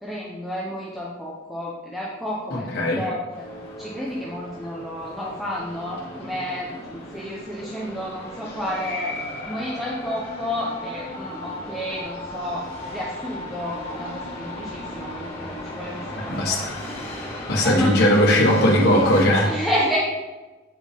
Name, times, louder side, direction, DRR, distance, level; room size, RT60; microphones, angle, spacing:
voice 1, 0.0-3.5 3.8-9.1 9.4-16.7 17.6-17.9 19.4-20.0, equal, ahead, -6 dB, 0.8 m, -31 dB
voice 2, 2.5-3.0 16.3-16.9 17.5-19.5, left 1 dB, 55° left, -4 dB, 1.4 m, -19 dB
sound 1, 3.3-19.2, left 1 dB, 30° left, 1.8 m, -36 dB
8.9 x 4.9 x 3.5 m, 1.2 s
head